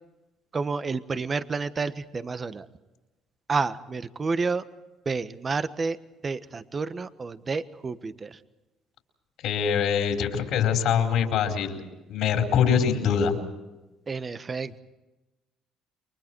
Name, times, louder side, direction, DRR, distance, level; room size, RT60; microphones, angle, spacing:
voice 1, 0.5-2.7 3.5-4.6 5.0-6.0 6.2-8.4 14.1-14.8, right 4 dB, 30° right, 12 dB, 1.3 m, -30 dB
voice 2, 9.4-11.8 12.1-13.4, left 7 dB, 70° left, 2 dB, 4.4 m, -23 dB
29.5 x 23.5 x 4.7 m, 1.1 s
supercardioid pair, 90°, 0 cm